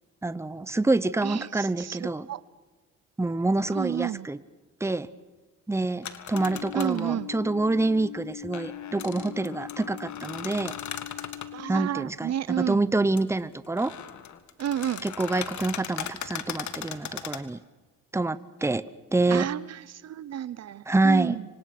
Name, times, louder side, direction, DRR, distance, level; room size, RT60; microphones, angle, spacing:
voice 1, 0.2-2.3 3.2-4.4 4.8-5.1 5.7-10.8 11.7-13.9 15.0-17.6 18.1-18.8 19.1-19.5 20.9-21.4, right 2 dB, 10° right, 15 dB, 0.9 m, -26 dB
voice 2, 1.2-2.4 3.7-4.3 6.7-7.3 11.5-12.8 14.6-15.0 19.3-21.4, right 11 dB, 60° right, 19 dB, 0.8 m, -31 dB
sound 1, 6.0-7.1 8.5-11.5 13.2-13.3 13.6-17.4, left 9 dB, 70° left, 1.8 m, -38 dB
sound 2, 6.3-11.8, left 12 dB, 85° left, 1.1 m, -41 dB
26.0 x 25.0 x 6.0 m, 1.3 s
cardioid pair, 90°, 30 cm